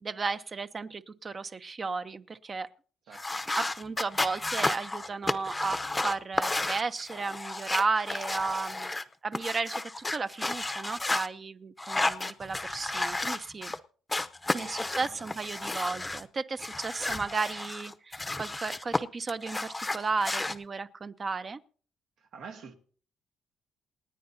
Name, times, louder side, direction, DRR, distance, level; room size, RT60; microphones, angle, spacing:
voice 1, 0.0-2.7 3.6-9.8 10.1-13.7 14.5-21.6, right 4 dB, 35° right, 0.6 m, -34 dB
sound 1, 3.1-9.0 9.3-11.3 11.8-13.8 14.1-16.2 16.6-19.0 19.3-20.6, left 2 dB, 15° left, 0.7 m, -32 dB
voice 2, 3.1-3.4 14.6-15.5 22.3-22.7, right 5 dB, 80° right, 1.7 m, -48 dB
28.0 x 9.6 x 2.7 m
cardioid pair, 105°, 0 cm